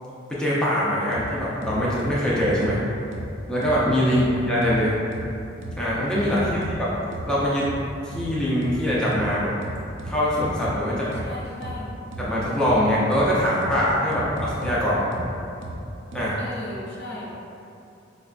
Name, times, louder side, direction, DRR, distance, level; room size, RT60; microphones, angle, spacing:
voice 1, 0.3-2.8 3.5-4.9 5.8-6.7 7.2-7.7 8.0-9.5 10.0-11.2 12.2-15.0 16.1-16.3, equal, 5° left, -8 dB, 0.4 m, -23 dB
sound 1, 1.1-1.2 1.6-2.7 3.1-3.2 3.6-3.7 4.1-4.2 4.6-4.7 5.1-5.2 5.6-5.7 6.1-6.7 7.1-7.2 7.6-7.7 8.1-8.2 8.6-8.7 9.1-9.2 9.6-10.7 11.1-11.2 11.6-11.7 12.1-12.2 12.6-12.7 13.1-13.2 13.6-13.7 14.1-14.7 15.1-15.2 15.6-15.7 16.1-16.2, right 2 dB, 65° right, 0.4 m, -34 dB
voice 2, 10.9-11.9 16.4-17.3, left 1 dB, 60° left, -5 dB, 0.6 m, -37 dB
4.4 x 2.2 x 2.4 m, 2.6 s
head